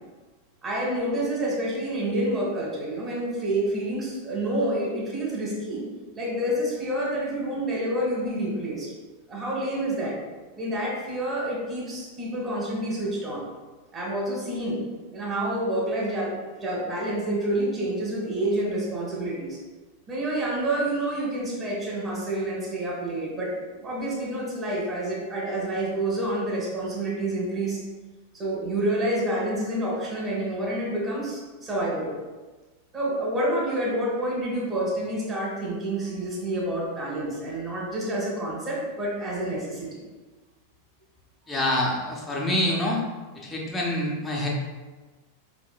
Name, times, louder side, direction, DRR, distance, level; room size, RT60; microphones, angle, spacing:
voice 1, 0.6-5.8 6.1-8.9 9.3-10.1 10.6-13.4 13.9-14.8 15.1-19.6 20.1-27.8 28.3-32.1 32.9-40.0, right 1 dB, 25° right, -5 dB, 1.3 m, -28 dB
voice 2, 41.5-43.0 43.4-44.5, left 1 dB, 15° left, -2 dB, 0.7 m, -26 dB
4.7 x 3.6 x 2.2 m, 1.2 s
figure-of-eight pair, 90°, 0 cm